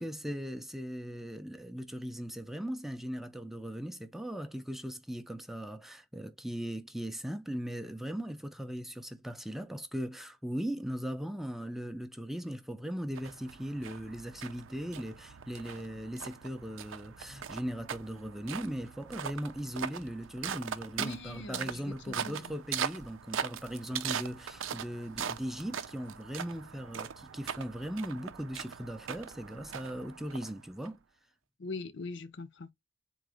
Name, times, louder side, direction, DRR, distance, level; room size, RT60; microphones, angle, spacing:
voice 1, 0.0-31.0, equal, ahead, 0.4 m, -39 dB
sound 1, 13.2-30.9, right 8 dB, 85° right, 0.5 m, -41 dB
voice 2, 21.0-22.6 31.6-32.7, left 3 dB, 65° left, 0.6 m, -42 dB
3.9 x 2.8 x 4.7 m
head